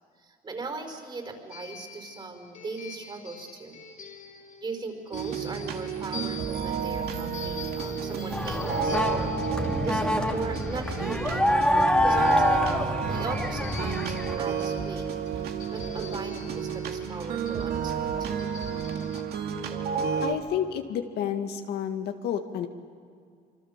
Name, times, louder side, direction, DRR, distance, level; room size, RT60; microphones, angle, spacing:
voice 1, 0.2-3.8 4.6-9.4 9.8-11.7 12.0-15.1 15.7-18.5, right 3 dB, 30° right, 5 dB, 5.2 m, -38 dB
sound 1, 1.5-19.2, left 6 dB, 50° left, 4.2 m, -46 dB
sound 2, 5.1-20.3, right 6 dB, 70° right, 2.3 m, -31 dB
sound 3, 8.3-14.4, left 1 dB, 5° left, 2.3 m, -26 dB
voice 2, 20.2-22.7, left 9 dB, 75° left, 5 dB, 2.0 m, -30 dB
26.5 x 25.0 x 7.5 m, 2.2 s
cardioid pair, 110°, 17 cm